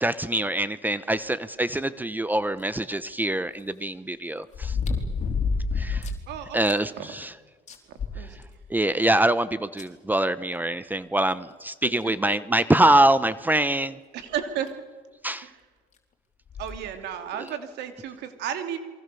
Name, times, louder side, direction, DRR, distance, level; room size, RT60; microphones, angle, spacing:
voice 1, 0.0-4.8 5.8-6.0 6.5-7.3 8.7-14.0 15.2-15.5, right 1 dB, 10° right, 14 dB, 0.9 m, -24 dB
sound 1, 2.6-2.7 4.5-6.2 6.7-6.8 7.2-7.3 7.7-8.8 9.8-9.9 11.3-11.4 12.0-12.1 12.8-13.0 14.4-14.5 14.7-14.8 16.5-16.8 17.5-17.6, left 4 dB, 45° left, 4.1 m, -28 dB
voice 2, 6.3-7.1 8.1-8.4 14.1-14.8 15.4-15.6 16.6-18.8, right 9 dB, 85° right, 7 dB, 3.0 m, -33 dB
28.0 x 23.5 x 7.0 m, 1.4 s
cardioid pair, 110°, 17 cm